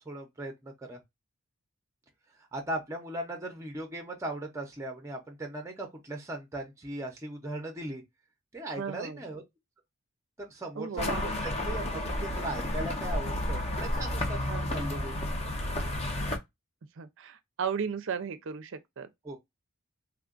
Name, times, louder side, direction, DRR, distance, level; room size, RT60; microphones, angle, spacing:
voice 1, 0.1-1.0 2.4-8.0 8.5-9.4 10.4-15.2 15.6-15.7 19.2-19.4, right 1 dB, 15° right, 0.6 m, -38 dB
voice 2, 8.8-9.2 10.8-11.3 14.5-14.9 17.0-19.1, right 6 dB, 55° right, 0.5 m, -35 dB
sound 1, 11.0-16.4, left 1 dB, 30° left, 0.7 m, -31 dB
3.5 x 2.4 x 2.4 m
head